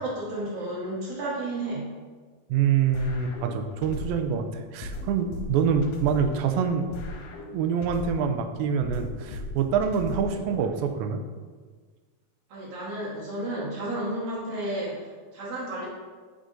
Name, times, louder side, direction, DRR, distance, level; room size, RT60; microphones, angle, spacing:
voice 1, 0.0-1.9 12.5-15.9, right 1 dB, 55° right, -9 dB, 1.9 m, -32 dB
voice 2, 2.5-6.9 7.4-11.2, right 7 dB, 85° right, 6 dB, 2.3 m, -26 dB
sound 1, 2.9-4.4 4.8-8.4 8.8-10.9, left 2 dB, 80° left, 2.2 m, -38 dB
7.9 x 5.0 x 2.6 m, 1.5 s
omnidirectional pair, 4.3 m